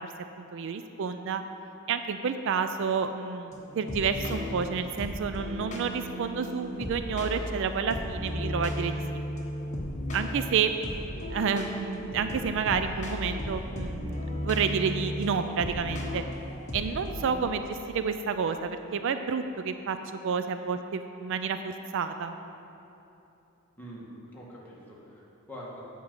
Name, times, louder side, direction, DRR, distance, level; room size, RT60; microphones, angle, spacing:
voice 1, 0.4-1.4 1.9-9.0 10.1-10.7 11.3-16.2 16.7-22.4, right 6 dB, 60° right, 9 dB, 0.4 m, -30 dB
sound 1, 3.5-17.3, equal, 35° left, 1.2 m, -35 dB
voice 2, 24.3-25.8, equal, 10° left, -6 dB, 1.8 m, -45 dB
8.7 x 5.4 x 7.6 m, 2.9 s
head